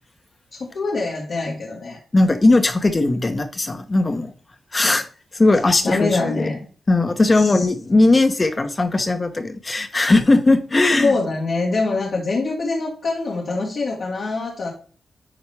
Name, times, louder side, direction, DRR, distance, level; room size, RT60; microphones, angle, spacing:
voice 1, 0.5-2.0 5.8-6.6 7.3-7.7 10.8-14.7, left 3 dB, 70° left, -3 dB, 2.0 m, -24 dB
voice 2, 2.1-4.3 4.7-5.0 5.3-6.4 6.9-11.1, left 2 dB, 35° left, 7 dB, 1.2 m, -18 dB
11.0 x 4.1 x 3.5 m, 0.40 s
cardioid pair, 50°, 0 cm